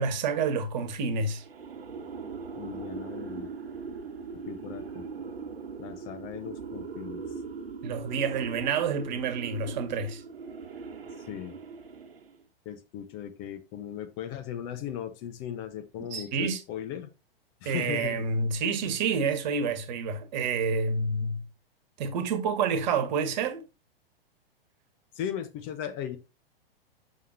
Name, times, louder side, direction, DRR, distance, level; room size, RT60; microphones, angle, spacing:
voice 1, 0.0-1.4 7.8-10.2 16.1-16.6 17.6-21.4 22.0-23.6, right 5 dB, 45° right, 1.4 m, -28 dB
sound 1, 1.3-12.4, right 5 dB, 70° right, 1.2 m, -40 dB
voice 2, 2.5-3.5 4.3-5.0 5.8-7.2 11.3-11.6 12.6-17.1 17.6-18.2 25.1-26.2, left 10 dB, 35° left, 1.0 m, -37 dB
7.1 x 6.1 x 2.7 m
figure-of-eight pair, 110°, 30 cm